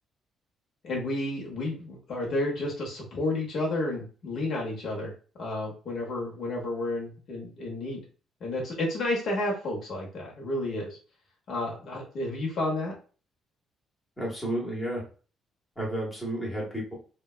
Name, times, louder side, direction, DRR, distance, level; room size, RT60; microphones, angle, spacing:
voice 1, 0.8-5.1 5.4-8.0 8.4-11.0 11.5-12.9, left 2 dB, 45° left, -2 dB, 0.9 m, -31 dB
voice 2, 14.2-15.0 15.8-16.9, right 1 dB, 5° left, -4 dB, 1.0 m, -31 dB
3.2 x 2.2 x 2.3 m, 0.37 s
cardioid pair, 170°, 0 cm